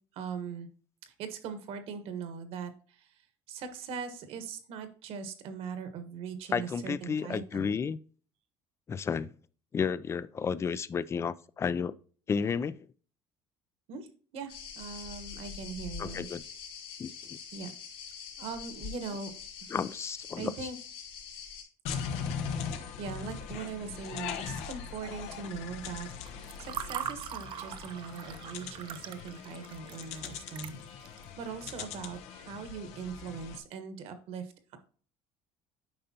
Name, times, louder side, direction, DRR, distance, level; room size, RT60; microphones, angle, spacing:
voice 1, 0.1-0.7 1.0-3.2 3.5-7.7 13.9-16.3 17.5-17.7 18.4-19.3 20.4-20.8 22.2-22.4 23.0-34.8, right 6 dB, 65° right, 1.3 m, -41 dB
voice 2, 6.5-8.0 8.9-9.3 9.7-11.9 12.3-12.8 16.0-16.4 17.0-17.4 19.7-20.5, left 6 dB, 25° left, 0.4 m, -32 dB
sound 1, 14.5-21.6, left 7 dB, 55° left, 3.2 m, -44 dB
sound 2, 21.9-33.6, left 7 dB, 80° left, 1.0 m, -40 dB
Water / Fill (with liquid), 26.1-31.2, right 9 dB, 50° right, 0.6 m, -41 dB
8.8 x 5.4 x 2.8 m
cardioid pair, 120°, 11 cm